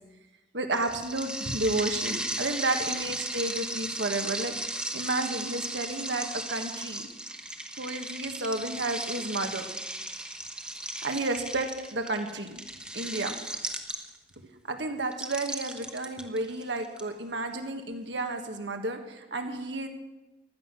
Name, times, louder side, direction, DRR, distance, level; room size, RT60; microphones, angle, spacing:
voice 1, 0.5-4.5 4.9-7.1 7.8-9.7 11.0-12.7 12.9-13.3 14.7-19.9, right 2 dB, 85° right, 5 dB, 1.8 m, -31 dB
sound 1, 0.7-14.3 15.1-17.0, right 1 dB, 5° right, 1.2 m, -36 dB
15.5 x 11.5 x 6.2 m, 1.0 s
head